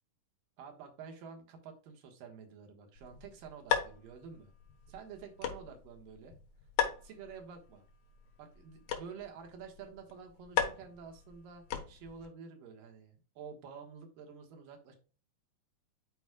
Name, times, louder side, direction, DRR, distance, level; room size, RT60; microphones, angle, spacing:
voice 1, 0.6-4.5 4.9-6.4 7.0-7.8 8.4-15.0, right 6 dB, 80° right, 4 dB, 3.0 m, -49 dB
sound 1, 3.0-12.3, left 9 dB, 85° left, 3.0 m, -38 dB
11.0 x 4.9 x 2.3 m, 0.36 s
omnidirectional pair, 3.9 m